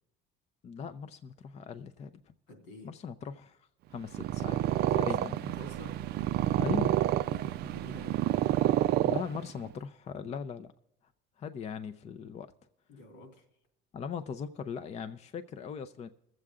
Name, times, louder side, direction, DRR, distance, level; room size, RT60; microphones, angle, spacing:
voice 1, 0.6-2.3 2.8-3.6 3.9-4.6 4.9-5.5 6.6-7.0 9.0-10.7 11.4-12.5 13.9-16.1, left 6 dB, 35° left, 0.5 m, -39 dB
voice 2, 2.5-2.9 4.9-5.1 5.6-6.0 7.2-8.2 12.9-13.4, left 2 dB, 85° left, 3.0 m, -49 dB
Purr, 4.0-9.7, right 13 dB, 60° right, 0.4 m, -29 dB
22.0 x 7.7 x 3.6 m
cardioid pair, 130°, 19 cm